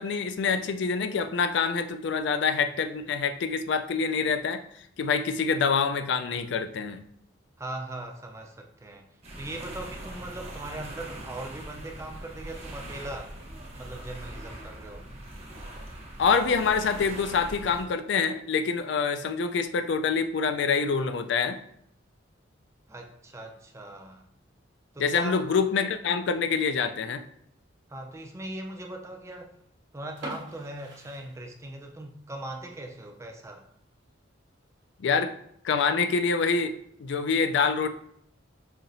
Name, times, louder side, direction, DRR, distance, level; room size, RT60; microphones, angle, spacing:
voice 1, 0.0-7.1 16.2-21.6 25.0-27.2 35.0-35.3 35.6-37.9, left 5 dB, 60° left, 8 dB, 0.4 m, -26 dB
voice 2, 7.6-9.1 9.4-13.4 13.7-15.1 22.9-24.3 24.9-25.4 27.9-29.5 29.9-33.6, right 2 dB, 15° right, 2 dB, 0.4 m, -40 dB
sound 1, 9.2-17.8, right 1 dB, 30° right, 0.9 m, -41 dB
sound 2, 30.2-32.0 32.3-32.4 33.0-33.2 33.6-33.7 33.9-34.0 34.8-35.1, right 1 dB, 65° right, 1.0 m, -43 dB
5.5 x 2.8 x 2.6 m, 0.69 s
head